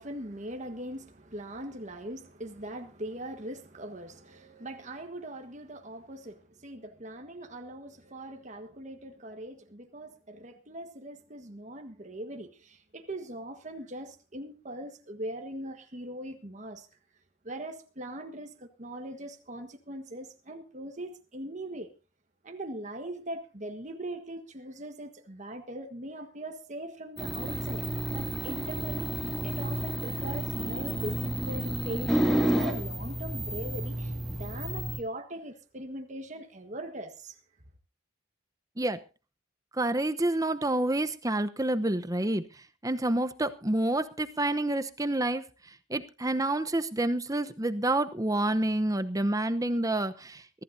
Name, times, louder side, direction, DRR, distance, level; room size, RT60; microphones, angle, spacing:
voice 1, 0.0-16.9 17.4-21.9 22.4-37.4, right 1 dB, 35° right, 1.5 m, -41 dB
sound 1, 27.2-35.0, right 1 dB, ahead, 2.5 m, -31 dB
voice 2, 39.8-42.4 42.8-45.4 45.9-50.6, right 1 dB, 20° right, 0.8 m, -28 dB
23.0 x 14.5 x 2.7 m
head